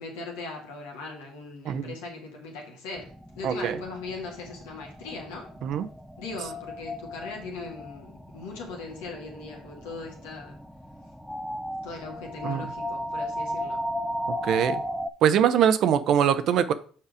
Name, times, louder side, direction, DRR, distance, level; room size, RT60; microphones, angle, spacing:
voice 1, 0.0-5.6 6.2-10.6 11.8-13.9, left 3 dB, 85° left, 1.9 m, -39 dB
sound 1, 3.0-15.1, equal, ahead, 0.6 m, -36 dB
voice 2, 3.4-3.8 5.6-5.9 12.4-12.7 14.4-14.8 15.2-16.7, right 9 dB, 65° right, 0.6 m, -22 dB
5.7 x 4.7 x 4.9 m
supercardioid pair, 70°, 0 cm